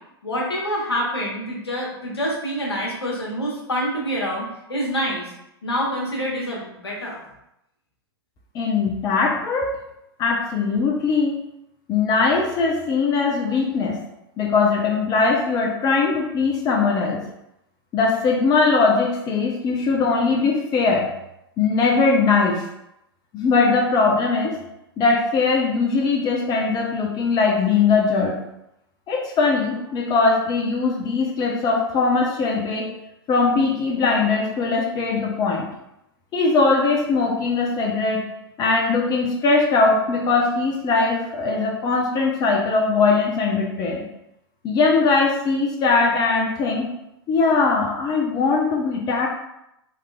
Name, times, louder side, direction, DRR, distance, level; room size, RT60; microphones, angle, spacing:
voice 1, 0.2-5.3 5.6-7.2, equal, 80° left, -3 dB, 1.1 m, -26 dB
voice 2, 8.5-9.7 10.2-11.4 11.9-14.0 14.4-17.2 17.9-21.1 21.6-22.6 23.3-24.6 25.0-28.4 29.1-32.9 33.3-35.7 36.3-38.2 38.6-44.0 44.6-46.9 47.3-49.3, left 4 dB, 30° left, -1 dB, 0.6 m, -20 dB
3.6 x 3.2 x 2.3 m, 0.83 s
figure-of-eight pair, 90°, 13 cm